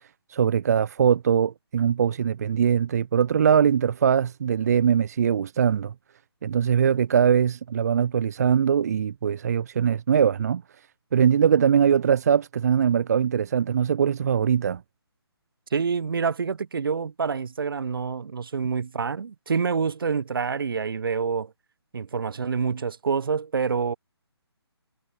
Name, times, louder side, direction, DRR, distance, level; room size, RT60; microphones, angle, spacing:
voice 1, 0.3-5.9 6.4-10.6 11.1-14.8, right 8 dB, 40° right, 0.5 m, -21 dB
voice 2, 15.7-21.5 21.9-23.9, right 5 dB, 55° right, 0.9 m, -27 dB
figure-of-eight pair, 145°, 14 cm